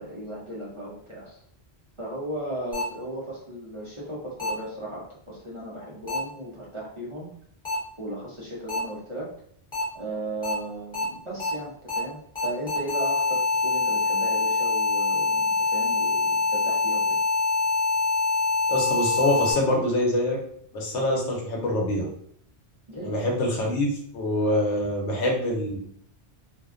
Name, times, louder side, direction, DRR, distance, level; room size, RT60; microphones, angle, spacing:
voice 1, 0.0-1.4 2.0-7.3 8.0-9.3 9.9-17.2 22.9-23.2, right 1 dB, 35° right, -7 dB, 0.5 m, -36 dB
sound 1, 2.7-2.8 4.4-4.5 6.1-6.2 7.6-7.7 8.7-8.8 9.7-9.8 10.4-10.5 10.9-11.0 11.4-11.5 11.9-12.0 12.4-19.5, left 4 dB, 30° left, 0.8 m, -24 dB
voice 2, 18.7-20.4 20.7-22.1 23.0-25.8, left 1 dB, 85° left, 0 dB, 1.0 m, -25 dB
2.4 x 2.1 x 2.4 m, 0.64 s
omnidirectional pair, 1.2 m